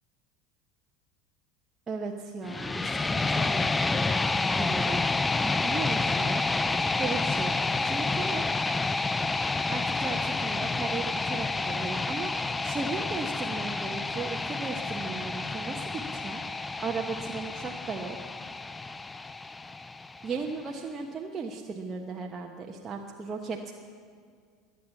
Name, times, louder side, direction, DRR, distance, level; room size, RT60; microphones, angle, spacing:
voice 1, 1.9-3.7 4.5-5.0 5.4-6.4 6.7-7.6 7.8-8.5 9.7-18.2 20.2-23.7, right 4 dB, 30° right, 1 dB, 1.2 m, -36 dB
sound 1, 2.4-20.5, left 3 dB, 15° left, 0.5 m, -29 dB
21.5 x 8.7 x 7.3 m, 2.1 s
hypercardioid pair, 75°, 0 cm